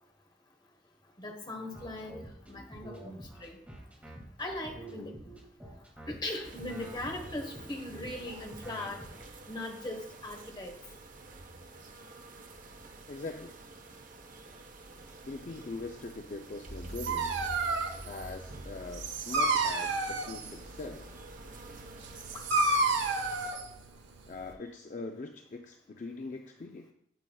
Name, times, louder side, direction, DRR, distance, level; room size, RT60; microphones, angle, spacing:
voice 1, 1.2-2.1 2.5-3.6 4.4-5.1 6.1-9.0 9.5-10.7 22.3-22.4, left 1 dB, 25° left, 3 dB, 1.2 m, -39 dB
sound 1, 1.7-9.3, equal, 10° right, 2.0 m, -47 dB
sound 2, 6.4-23.5, right 3 dB, 50° right, 0.8 m, -50 dB
voice 2, 13.1-13.6 15.2-21.2 24.3-26.9, left 3 dB, 45° left, 4 dB, 0.4 m, -42 dB
Dog, 16.7-24.5, right 3 dB, 90° right, 0.9 m, -31 dB
9.0 x 7.6 x 2.3 m, 0.69 s
head